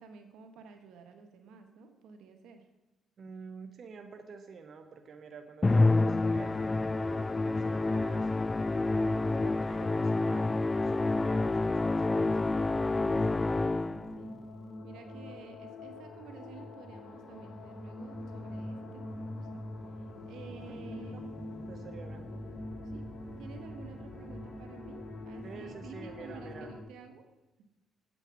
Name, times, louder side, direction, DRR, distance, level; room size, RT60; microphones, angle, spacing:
voice 1, 0.0-2.7 12.9-14.3 14.8-21.3 22.8-23.1 23.4-27.3, right 6 dB, 85° right, 6 dB, 1.4 m, -51 dB
voice 2, 3.2-8.3 8.9-12.4 13.8-14.4 20.7-20.8 21.1-21.2 21.7-22.3 25.4-26.8, right 5 dB, 55° right, 6 dB, 1.1 m, -48 dB
Musical instrument, 5.6-14.2, left 2 dB, 25° left, 0.3 m, -28 dB
sound 1, 7.9-14.8, left 2 dB, 5° right, 3.3 m, -59 dB
sound 2, 9.4-26.8, left 1 dB, 50° left, 3.0 m, -44 dB
8.8 x 8.2 x 6.1 m, 1.0 s
cardioid pair, 90°, 0 cm